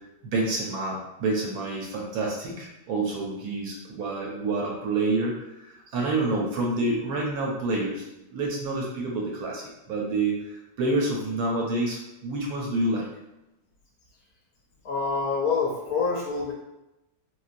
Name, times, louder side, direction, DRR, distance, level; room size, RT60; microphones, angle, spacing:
voice 1, 0.2-5.4 5.7-8.0 8.3-13.0, right 2 dB, 70° right, -2 dB, 1.0 m, -28 dB
voice 2, 14.8-16.5, left 4 dB, 70° left, -2 dB, 1.0 m, -26 dB
3.8 x 2.1 x 2.5 m, 0.94 s
omnidirectional pair, 1.9 m